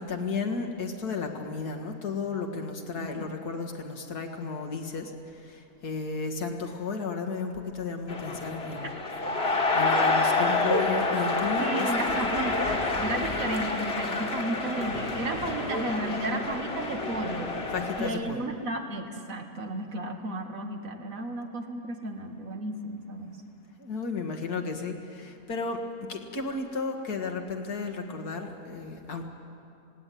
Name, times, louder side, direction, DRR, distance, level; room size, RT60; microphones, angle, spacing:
voice 1, 0.0-8.9 9.7-12.3 17.7-18.5 23.2-23.3 23.8-29.3, left 4 dB, 80° left, 3 dB, 2.2 m, -33 dB
sound 1, 8.1-18.1, left 2 dB, 40° left, 1.9 m, -28 dB
voice 2, 11.6-17.5 18.0-23.3, right 2 dB, 60° right, 4 dB, 1.7 m, -33 dB
19.5 x 17.5 x 9.2 m, 2.6 s
omnidirectional pair, 1.6 m